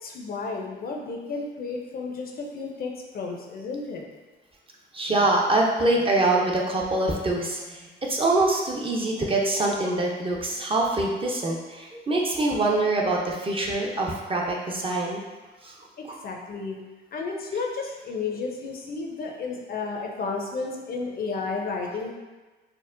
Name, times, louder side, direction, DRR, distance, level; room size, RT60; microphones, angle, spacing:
voice 1, 0.0-4.1 16.0-16.8 17.1-22.2, left 4 dB, 50° left, 1 dB, 0.5 m, -32 dB
voice 2, 4.9-7.8 8.1-15.2, right 2 dB, 25° right, -1 dB, 0.5 m, -24 dB
4.3 x 2.1 x 2.5 m, 1.2 s
cardioid pair, 90°, 20 cm